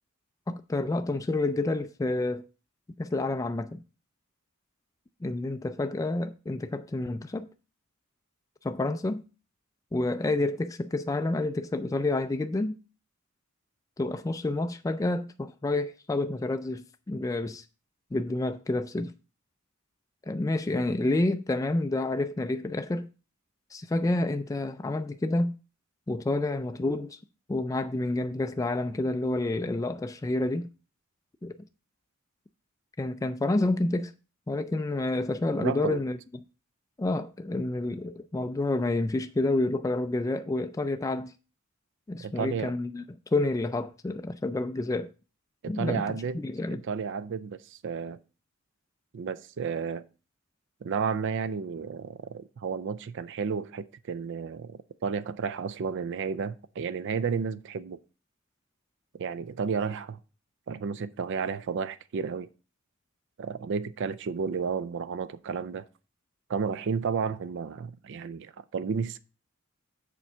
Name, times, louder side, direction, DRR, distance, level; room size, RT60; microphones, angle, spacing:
voice 1, 0.5-2.4 3.0-3.8 5.2-7.5 8.6-9.2 9.9-12.8 14.0-17.6 18.1-19.1 20.3-23.1 23.7-25.6 26.1-27.2 27.5-30.7 31.4-31.6 33.0-34.1 34.5-36.2 37.0-41.3 42.1-43.0 43.3-45.1 45.7-46.8, left 2 dB, 15° left, 0.3 m, -29 dB
voice 2, 35.6-36.0 42.2-42.7 45.6-46.4 46.7-48.2 49.1-50.0 50.8-58.0 59.1-60.2 60.7-62.5 63.4-65.8 66.5-69.2, right 6 dB, 60° right, 0.4 m, -32 dB
6.9 x 4.4 x 6.0 m
head